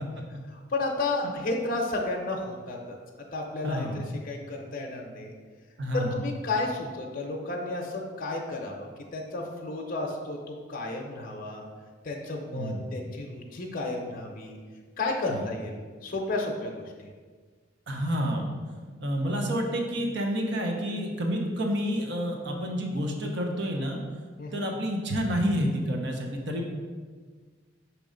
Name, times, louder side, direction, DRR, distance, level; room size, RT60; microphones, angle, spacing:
voice 1, 0.5-3.0 3.3-5.3 5.9-11.6 12.0-14.6 15.0-17.1 24.4-24.7, left 2 dB, 45° left, 0 dB, 0.6 m, -32 dB
voice 2, 3.6-4.1 5.8-6.2 12.5-12.9 15.3-15.5 17.9-18.6 19.0-24.0 24.5-26.7, equal, 60° right, 1 dB, 0.8 m, -29 dB
6.2 x 3.0 x 5.1 m, 1.5 s
head